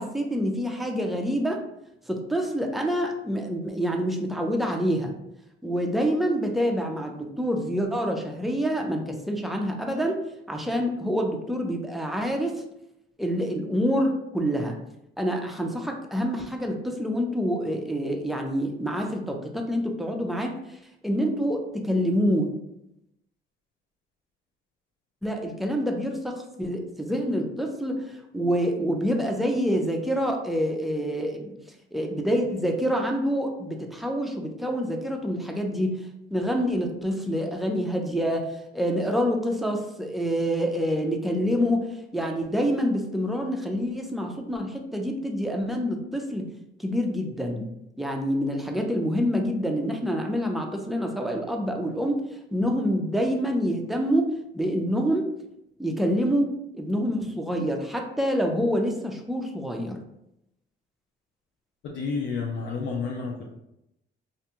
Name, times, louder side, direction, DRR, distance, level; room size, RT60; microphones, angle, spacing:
voice 1, 0.0-1.6 2.1-5.1 5.6-10.2 10.5-12.6 13.2-14.8 15.2-20.6 21.0-22.5 25.2-31.5 31.9-36.0 36.3-46.5 46.8-47.7 48.0-52.2 52.5-55.3 55.8-60.0, equal, ahead, 2 dB, 0.4 m, -27 dB
voice 2, 61.8-63.5, left 4 dB, 70° left, -1 dB, 0.5 m, -30 dB
2.5 x 2.2 x 2.9 m, 0.82 s
cardioid pair, 90°, 20 cm